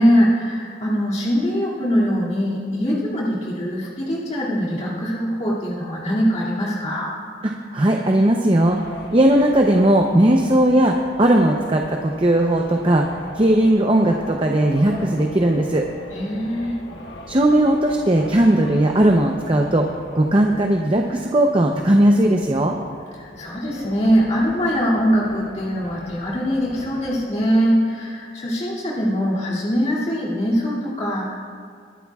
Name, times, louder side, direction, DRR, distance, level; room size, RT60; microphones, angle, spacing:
voice 1, 0.0-7.1 16.1-16.8 23.2-31.5, equal, 40° left, -7 dB, 2.4 m, -22 dB
voice 2, 7.7-13.1 13.3-15.8 17.3-19.9 20.1-22.7, right 1 dB, 30° right, 1 dB, 0.7 m, -17 dB
sound 1, 8.6-27.4, left 1 dB, 70° left, 1.3 m, -40 dB
22.5 x 11.5 x 2.4 m, 2.1 s
head